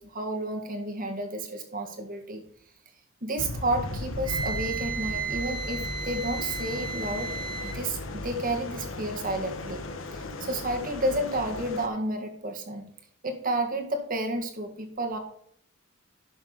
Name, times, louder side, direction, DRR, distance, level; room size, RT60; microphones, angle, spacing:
voice 1, 0.0-2.4 3.2-7.3 7.6-9.9 10.1-12.9 13.2-15.2, right 1 dB, 45° right, 4 dB, 1.8 m, -31 dB
sound 1, 3.4-11.9, left 2 dB, 80° left, 1.2 m, -37 dB
Wind instrument woodwind instrument, 4.3-7.8, right 5 dB, 25° right, 1.0 m, -34 dB
11.5 x 6.4 x 4.0 m, 0.63 s
head